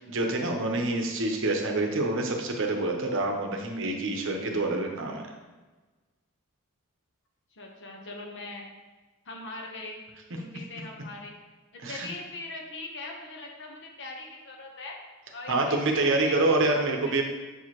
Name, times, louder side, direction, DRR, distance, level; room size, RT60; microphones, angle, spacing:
voice 1, 0.0-5.2 11.8-12.1 15.5-17.2, right 2 dB, 60° right, 2 dB, 0.8 m, -27 dB
voice 2, 7.5-8.7 9.2-10.0 10.4-11.3 11.7-15.0 15.3-16.3 16.9-17.2, left 2 dB, 55° left, 0 dB, 1.0 m, -41 dB
6.6 x 4.7 x 3.0 m, 1.2 s
head